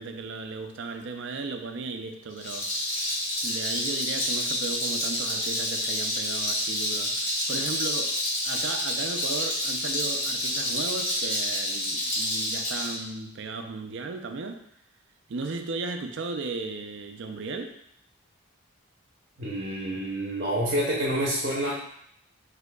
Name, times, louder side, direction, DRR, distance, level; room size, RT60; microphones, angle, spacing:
voice 1, 0.0-2.7 3.4-8.2 8.4-14.6 15.3-17.8, right 3 dB, 60° right, 6 dB, 0.4 m, -35 dB
Rattle, 2.3-13.0, left 1 dB, 65° left, 1.5 m, -28 dB
voice 2, 19.4-21.7, right 1 dB, 45° right, -5 dB, 0.8 m, -28 dB
6.2 x 2.7 x 2.2 m, 0.71 s
head